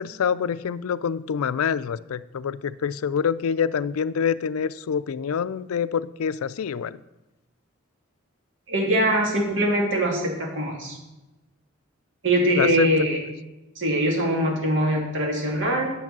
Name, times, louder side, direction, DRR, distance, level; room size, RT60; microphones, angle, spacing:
voice 1, 0.0-7.0 12.5-12.9, left 7 dB, 85° left, 16 dB, 0.4 m, -26 dB
voice 2, 8.7-11.0 12.2-13.2 13.8-15.9, right 1 dB, 60° right, -1 dB, 2.7 m, -22 dB
10.5 x 6.8 x 6.0 m, 1.0 s
head